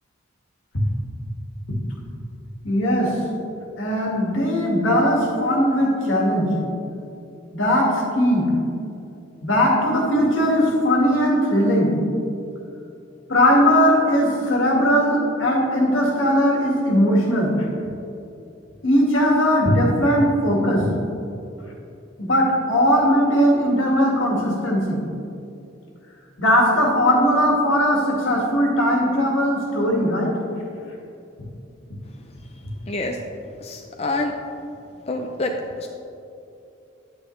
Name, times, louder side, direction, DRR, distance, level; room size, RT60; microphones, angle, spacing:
voice 1, 2.6-3.2 3.8-6.6 7.5-8.5 9.4-12.0 13.3-17.7 18.8-20.9 22.2-25.0 26.4-30.3, equal, 80° left, -2 dB, 1.9 m, -19 dB
voice 2, 32.9-33.2 33.6-34.3 35.1-35.9, left 2 dB, 30° left, 2 dB, 0.5 m, -27 dB
10.5 x 8.6 x 3.2 m, 2.7 s
head